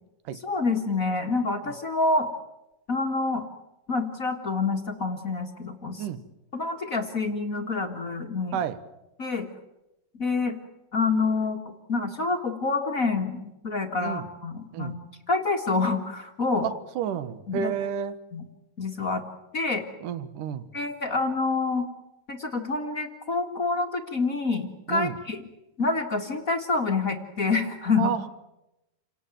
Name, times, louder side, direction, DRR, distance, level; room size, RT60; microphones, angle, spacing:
voice 1, 0.4-2.3 2.9-3.5 3.9-6.0 6.5-8.6 9.2-9.5 10.1-10.6 10.9-11.6 11.9-15.0 15.3-16.6 17.5-17.7 18.3-18.4 18.8-19.2 19.5-19.8 20.7-21.9 22.3-25.4 25.8-28.1, left 3 dB, 50° left, 3 dB, 1.0 m, -27 dB
voice 2, 16.6-18.2 20.0-20.7 24.9-25.2 28.0-28.3, right 8 dB, 65° right, 14 dB, 2.5 m, -31 dB
29.5 x 18.5 x 9.2 m, 0.96 s
omnidirectional pair, 4.5 m